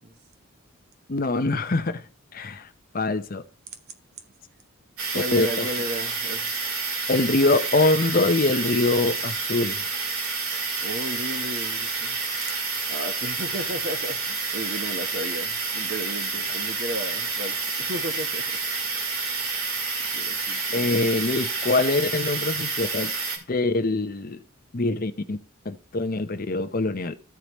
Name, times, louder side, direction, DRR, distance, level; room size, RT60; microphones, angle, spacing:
voice 1, 1.1-2.0 2.3-2.7 2.9-3.4 5.3-5.7 7.1-9.8 20.7-23.1 23.5-24.4 24.7-25.4 25.6-27.1, left 2 dB, 40° left, 0.7 m, -24 dB
sound 1, 5.0-23.4, right 4 dB, 75° right, 2.3 m, -29 dB
voice 2, 5.1-6.5 10.8-12.2 12.9-18.4 20.1-20.8, equal, 45° right, 1.1 m, -34 dB
13.5 x 4.8 x 3.0 m
head